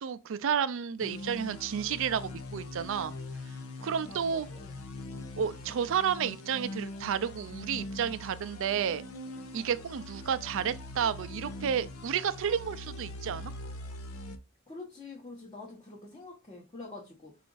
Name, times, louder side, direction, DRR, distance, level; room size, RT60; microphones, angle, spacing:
voice 1, 0.0-3.1 3.8-4.5 5.4-9.0 9.5-13.5, right 7 dB, 65° right, 0.4 m, -31 dB
sound 1, 1.0-14.4, left 2 dB, 90° left, 0.7 m, -42 dB
voice 2, 4.1-4.8 14.7-17.4, left 3 dB, 20° left, 0.9 m, -46 dB
4.8 x 2.5 x 3.8 m
head